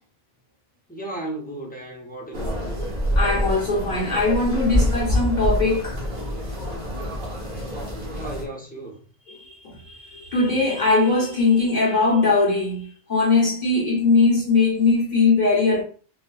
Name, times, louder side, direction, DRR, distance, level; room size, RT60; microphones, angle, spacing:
voice 1, 0.9-2.8 8.1-9.0, right 2 dB, 10° left, 0.6 m, -35 dB
sound 1, 2.3-8.4, left 1 dB, 55° right, 1.2 m, -26 dB
voice 2, 3.2-6.0 9.3-9.5 9.8-15.8, left 3 dB, 50° left, 0.9 m, -20 dB
4.0 x 2.2 x 2.2 m
omnidirectional pair, 1.0 m